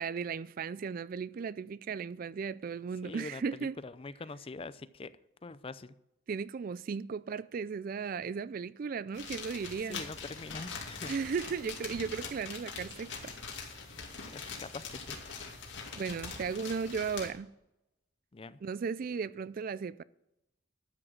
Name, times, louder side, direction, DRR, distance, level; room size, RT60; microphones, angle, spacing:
voice 1, 0.0-3.7 6.3-10.0 11.1-13.3 14.1-14.2 16.0-17.5 18.6-20.0, right 5 dB, 45° right, 0.3 m, -36 dB
voice 2, 3.0-5.1 5.4-5.9 9.9-11.1 14.3-15.2 18.3-18.6, left 3 dB, 30° left, 0.4 m, -44 dB
sound 1, 9.1-17.3, left 5 dB, 65° left, 2.5 m, -43 dB
12.5 x 6.3 x 7.6 m
head